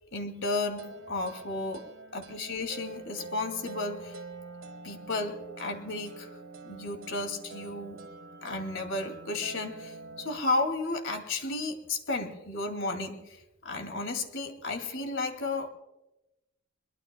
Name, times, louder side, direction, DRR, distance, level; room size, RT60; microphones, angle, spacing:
voice 1, 0.1-1.8 2.1-4.2 4.8-6.3 6.6-8.0 8.4-13.4 13.6-15.7, left 2 dB, 65° left, 6 dB, 2.4 m, -33 dB
sound 1, 0.8-10.4, right 4 dB, 90° right, 1.5 m, -46 dB
23.0 x 22.0 x 2.3 m, 0.95 s
head